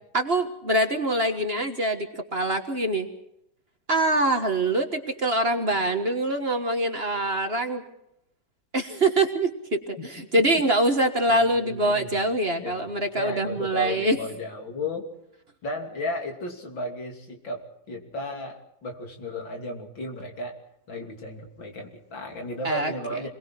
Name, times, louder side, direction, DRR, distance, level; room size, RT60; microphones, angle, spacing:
voice 1, 0.1-3.1 3.9-7.8 8.7-14.2 22.6-22.9, right 1 dB, 35° right, 5 dB, 1.7 m, -24 dB
voice 2, 10.4-10.7 11.3-12.2 12.6-15.1 15.6-20.6 20.9-23.3, left 1 dB, 85° left, 2 dB, 3.7 m, -34 dB
27.5 x 21.5 x 4.5 m, 0.79 s
omnidirectional pair, 2.0 m